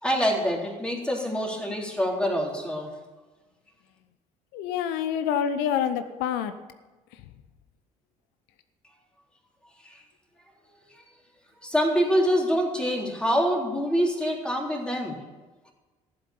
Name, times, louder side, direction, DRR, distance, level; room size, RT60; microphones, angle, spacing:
voice 1, 0.0-2.9 11.6-15.2, equal, 5° left, -1 dB, 3.5 m, -25 dB
voice 2, 4.5-6.5 7.1-7.3, left 8 dB, 65° left, 11 dB, 0.8 m, -27 dB
14.0 x 7.8 x 7.1 m, 1.2 s
figure-of-eight pair, 55°, 18 cm